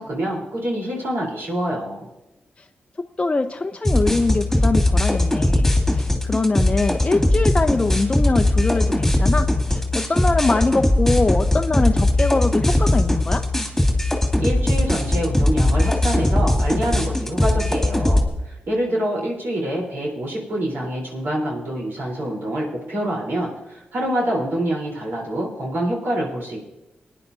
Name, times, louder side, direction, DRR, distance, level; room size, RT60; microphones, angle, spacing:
voice 1, 0.0-2.1 14.4-26.6, right 1 dB, 75° right, -3 dB, 3.8 m, -26 dB
voice 2, 3.2-13.4, left 3 dB, 30° left, 5 dB, 0.5 m, -23 dB
sound 1, 3.8-18.3, left 1 dB, 5° left, 2.3 m, -19 dB
21.5 x 10.0 x 2.7 m, 0.97 s
cardioid pair, 60°, 4 cm